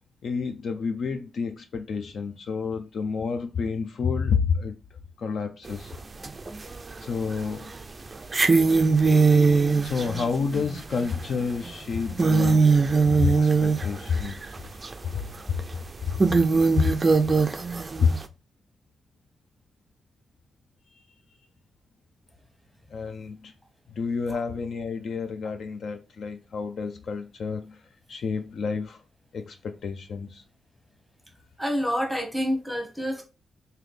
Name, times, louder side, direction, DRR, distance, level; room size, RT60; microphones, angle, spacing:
voice 1, 0.2-4.8 5.2-5.9 7.0-7.7 9.8-12.8 13.1-14.5 15.5-15.6 16.0-16.3 16.8-16.9 18.0-18.2 22.9-23.5 23.9-27.8 28.1-29.0 29.3-30.4, left 5 dB, 60° left, 0.5 m, -29 dB
sound 1, 5.7-5.8 6.2-7.0 7.3-7.4 8.2-14.6 14.8-14.9 15.6-15.7 16.2-18.2, right 4 dB, 25° right, 0.4 m, -21 dB
voice 2, 31.6-33.2, equal, ahead, 1.0 m, -27 dB
4.0 x 2.8 x 3.2 m
wide cardioid pair, 125°, 0 cm